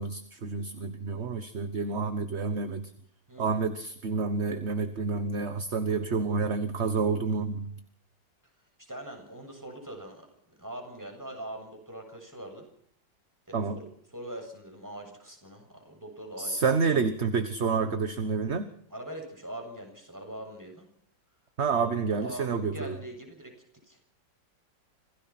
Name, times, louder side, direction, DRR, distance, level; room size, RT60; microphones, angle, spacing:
voice 1, 0.0-2.9 3.4-7.8 13.5-13.8 16.4-18.7 21.6-23.0, right 4 dB, 40° right, 10 dB, 1.4 m, -29 dB
voice 2, 8.8-10.3 10.6-12.7 13.5-16.6 18.9-20.9 21.7-23.5 23.8-24.0, right 1 dB, 10° right, 3 dB, 7.2 m, -42 dB
26.5 x 17.5 x 6.0 m, 0.66 s
omnidirectional pair, 2.0 m